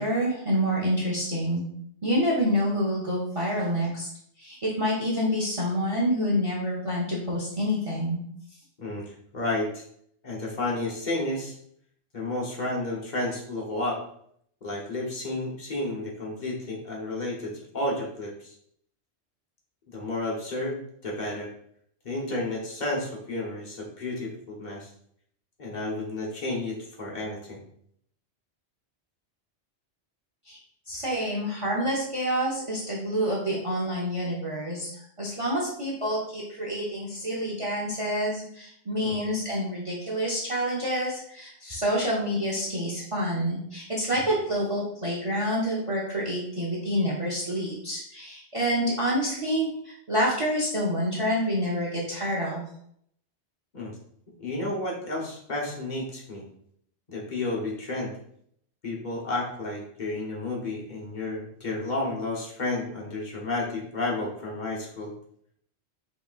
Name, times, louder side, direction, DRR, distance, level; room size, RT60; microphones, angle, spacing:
voice 1, 0.0-1.6 2.0-4.1 4.4-8.2 30.5-30.6 30.9-52.6, equal, 35° right, -3 dB, 0.8 m, -27 dB
voice 2, 8.8-9.8 10.2-11.6 12.1-14.0 14.6-18.5 19.9-21.5 22.0-24.9 25.6-27.6 39.0-39.3 53.7-53.9 54.4-56.4 57.1-58.1 58.8-65.1, left 2 dB, 45° left, -3 dB, 1.1 m, -31 dB
5.6 x 3.1 x 2.4 m, 0.68 s
omnidirectional pair, 1.1 m